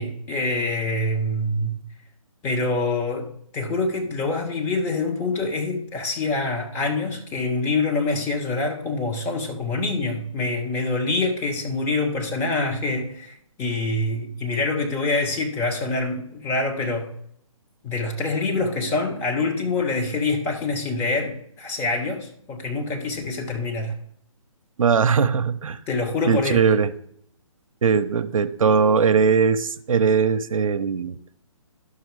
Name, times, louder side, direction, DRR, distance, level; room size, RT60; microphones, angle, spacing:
voice 1, 0.0-1.8 2.4-3.3 3.5-17.1 17.8-24.0 25.9-26.7, left 3 dB, 15° left, 2 dB, 1.3 m, -25 dB
voice 2, 24.8-25.8 26.3-26.9 27.8-31.2, right 6 dB, 75° right, 10 dB, 0.7 m, -20 dB
11.5 x 6.5 x 4.8 m, 0.68 s
hypercardioid pair, 155°, 18 cm